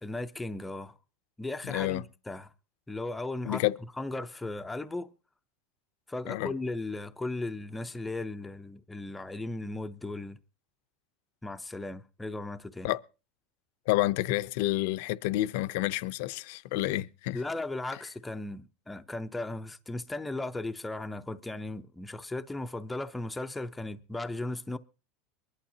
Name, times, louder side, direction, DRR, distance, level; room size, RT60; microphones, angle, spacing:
voice 1, 0.0-0.9 1.4-2.5 2.9-3.6 4.0-5.1 6.1-10.4 11.4-12.9 17.3-24.8, left 2 dB, 5° left, 0.5 m, -36 dB
voice 2, 1.7-2.0 3.5-3.8 6.3-6.5 12.8-13.0 13.9-17.4, left 16 dB, 60° left, 0.6 m, -29 dB
23.0 x 11.5 x 2.8 m
supercardioid pair, 160°, 0 cm